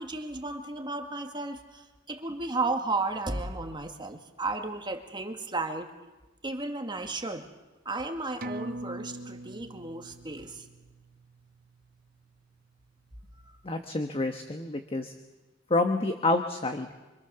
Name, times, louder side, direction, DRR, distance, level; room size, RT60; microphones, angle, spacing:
voice 1, 0.0-1.8 2.1-5.9 6.4-7.5 7.9-10.6, right 3 dB, 25° right, 4 dB, 2.1 m, -33 dB
sound 1, 8.4-13.3 13.7-13.8, right 1 dB, 50° right, 1.1 m, -43 dB
voice 2, 13.6-15.1 15.7-16.9, left 2 dB, 30° left, 6 dB, 1.4 m, -28 dB
26.5 x 25.5 x 7.0 m, 1.1 s
head